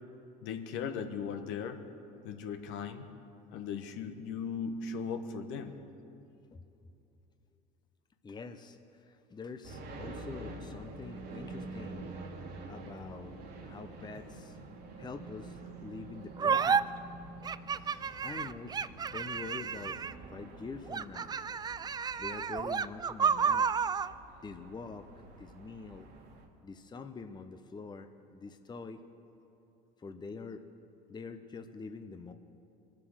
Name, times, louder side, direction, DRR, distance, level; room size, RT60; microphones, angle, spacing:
voice 1, 0.4-1.8 2.2-3.1 3.5-5.8 17.9-18.0, left 6 dB, 65° left, 6 dB, 1.3 m, -38 dB
voice 2, 8.2-12.1 12.7-13.3 13.6-14.6 15.0-16.8 18.2-20.0 20.3-21.3 22.2-23.7 24.4-25.1 25.4-26.1 26.6-29.0 30.0-30.6 31.1-32.3, left 4 dB, 20° left, 7 dB, 0.8 m, -45 dB
sound 1, 9.6-26.5, right 2 dB, 50° right, 2.2 m, -47 dB
sound 2, 16.4-16.8 17.4-20.3 20.9-24.1, right 6 dB, 20° right, 0.3 m, -31 dB
22.5 x 7.7 x 6.3 m, 2.7 s
hypercardioid pair, 80°, 21 cm